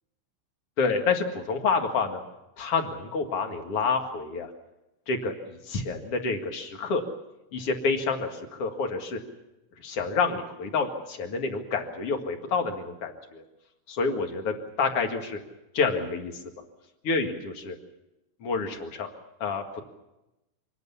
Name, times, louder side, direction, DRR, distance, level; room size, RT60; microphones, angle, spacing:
voice 1, 0.8-2.2 2.6-4.5 5.1-7.0 7.5-9.2 9.8-13.4 13.9-14.5 14.8-15.4 15.7-16.3 17.0-17.7 18.4-19.1 19.4-19.8, left 4 dB, 80° left, 4 dB, 1.3 m, -28 dB
26.0 x 20.0 x 7.1 m, 0.94 s
omnidirectional pair, 5.8 m